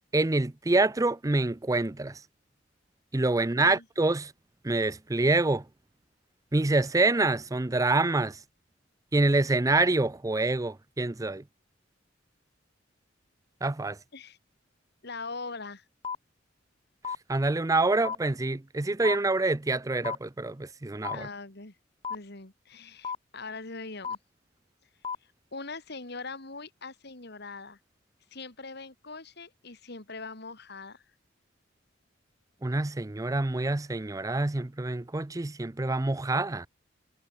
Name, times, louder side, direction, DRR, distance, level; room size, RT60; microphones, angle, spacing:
voice 1, 0.1-2.2 3.1-4.3 4.6-5.6 6.5-8.4 9.1-11.4 13.6-14.0 17.3-21.3 32.6-36.7, right 2 dB, 15° right, 0.5 m, -26 dB
voice 2, 3.3-3.8 14.1-14.4 15.0-15.8 21.1-21.8 22.1-24.2 25.5-27.8 28.3-31.0, left 3 dB, 60° left, 2.8 m, -41 dB
sound 1, 16.0-16.1 17.0-17.1 18.0-18.1 19.0-19.1 20.0-20.1 21.0-21.1 22.0-22.1 23.0-23.1 24.0-24.1 25.0-25.1, left 6 dB, 30° left, 0.7 m, -32 dB
head